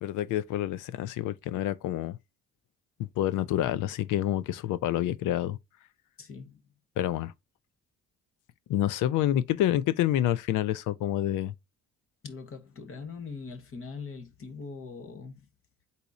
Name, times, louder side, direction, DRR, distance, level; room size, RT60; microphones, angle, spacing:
voice 1, 0.0-2.2 3.0-5.6 7.0-7.3 8.7-11.5, left 12 dB, 85° left, 0.5 m, -28 dB
voice 2, 6.2-6.6 12.2-15.5, left 5 dB, 45° left, 1.2 m, -42 dB
4.0 x 2.8 x 4.7 m
cardioid pair, 90°, 30 cm